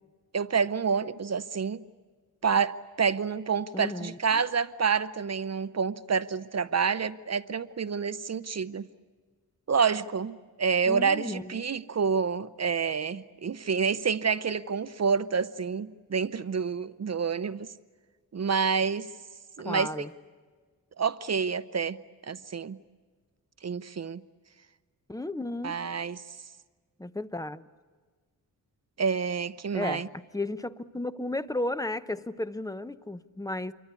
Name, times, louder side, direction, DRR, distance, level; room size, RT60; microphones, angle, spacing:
voice 1, 0.3-1.8 2.4-8.9 9.7-17.7 18.3-19.1 19.6-19.9 21.0-22.0 22.3-22.8 23.6-24.2 25.6-26.2 29.0-30.1, right 6 dB, 45° right, 14 dB, 0.7 m, -28 dB
voice 2, 3.7-4.4 10.9-11.6 19.6-20.1 25.1-25.8 27.0-27.6 29.7-33.7, left 1 dB, 10° left, 13 dB, 0.8 m, -34 dB
28.0 x 24.0 x 8.4 m, 1.5 s
wide cardioid pair, 90°, 36 cm